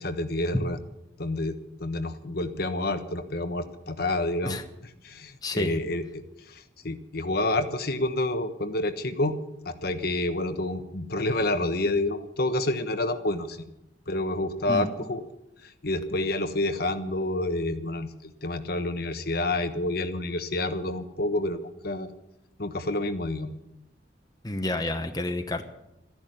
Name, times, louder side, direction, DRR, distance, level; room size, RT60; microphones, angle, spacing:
voice 1, 0.0-0.8 1.2-4.6 5.0-9.4 9.6-13.6 14.1-15.2 15.6-22.1 22.6-23.5, left 2 dB, 55° left, 8 dB, 1.2 m, -29 dB
voice 2, 5.4-5.8 14.7-14.9 24.4-25.6, left 1 dB, 20° left, 6 dB, 1.1 m, -29 dB
14.0 x 11.0 x 9.3 m, 0.87 s
head